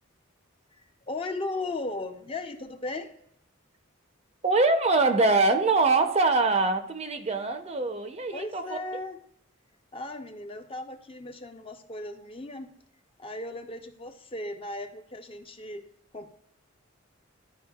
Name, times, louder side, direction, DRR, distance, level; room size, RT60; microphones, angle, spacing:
voice 1, 0.8-3.1 8.3-9.2 9.9-12.7 13.2-15.8 16.1-16.3, left 2 dB, 25° left, 5 dB, 0.6 m, -36 dB
voice 2, 4.4-8.8, right 3 dB, 30° right, 7 dB, 0.6 m, -23 dB
12.0 x 5.0 x 2.3 m, 0.72 s
head